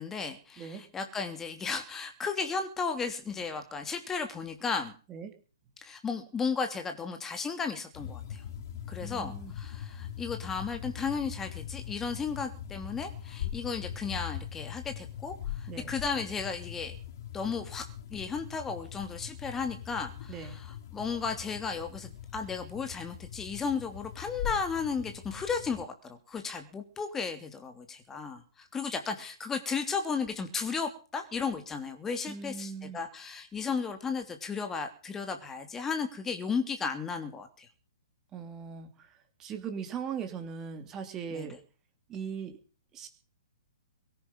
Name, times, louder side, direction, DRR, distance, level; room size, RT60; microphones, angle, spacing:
voice 1, 0.0-4.9 5.8-8.4 8.9-16.9 17.3-17.8 18.1-37.7 41.3-41.5, left 5 dB, 15° left, 6 dB, 3.0 m, -34 dB
sound 1, 7.9-25.8, left 10 dB, 50° left, 2.3 m, -41 dB
voice 2, 9.0-9.5 15.7-15.9 20.3-20.6 32.3-33.0 38.3-39.1 39.4-41.6 42.1-42.6 42.9-43.1, right 6 dB, 20° right, 7 dB, 3.0 m, -39 dB
22.5 x 10.5 x 5.4 m, 0.39 s
figure-of-eight pair, 120°, 2 cm